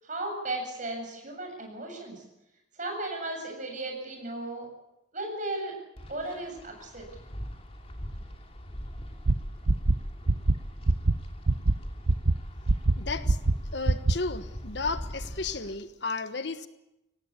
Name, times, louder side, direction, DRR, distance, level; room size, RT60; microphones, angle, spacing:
voice 1, 0.0-2.2 2.8-4.7 5.1-5.8 6.1-7.1, right 2 dB, 40° right, 2 dB, 7.8 m, -35 dB
Wind, 6.0-15.7, equal, 30° left, 2.9 m, -42 dB
sound 1, 9.3-9.4 9.7-9.9 10.3-10.5 10.9-11.1 11.5-11.7 12.1-12.3 12.7-12.9 13.3-13.5 13.9-14.1, right 2 dB, 85° right, 0.9 m, -21 dB
voice 2, 13.0-13.4 13.7-16.7, left 3 dB, 55° left, 11 dB, 1.2 m, -33 dB
25.0 x 18.0 x 8.5 m, 0.91 s
head